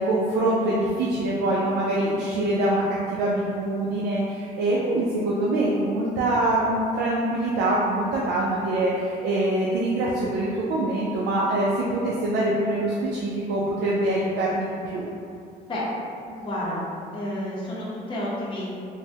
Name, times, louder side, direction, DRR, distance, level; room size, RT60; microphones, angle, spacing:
voice 1, 0.0-15.0, right 1 dB, 75° right, -5 dB, 0.4 m, -24 dB
voice 2, 16.2-16.8 17.1-18.7, left 1 dB, 30° left, -7 dB, 0.7 m, -30 dB
3.3 x 2.1 x 2.7 m, 2.5 s
cardioid pair, 110°, 17 cm